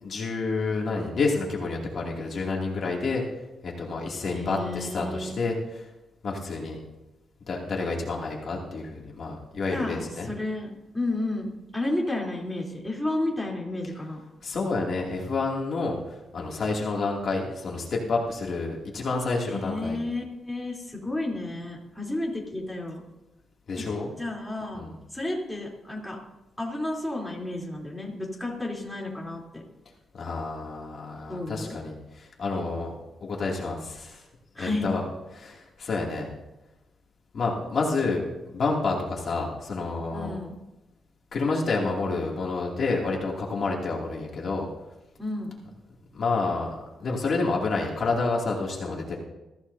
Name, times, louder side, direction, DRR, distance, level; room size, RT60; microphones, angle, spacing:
voice 1, 0.0-3.2 3.6-5.9 6.2-6.8 7.5-10.3 14.4-20.0 23.7-24.1 24.7-24.9 30.1-32.9 33.2-34.2 34.6-35.0 35.3-36.3 37.3-40.4 41.3-44.7 46.1-49.2, left 3 dB, 50° left, -2 dB, 2.6 m, -29 dB
voice 2, 4.2-5.3 9.7-14.2 19.5-23.0 23.8-23.9 24.2-24.8 25.1-26.2 26.6-29.6 31.3-31.8 34.5-34.9 40.1-40.5 45.2-45.5, left 2 dB, 5° left, -3 dB, 3.4 m, -32 dB
22.0 x 15.0 x 2.8 m, 1.0 s
cardioid pair, 130°, 0 cm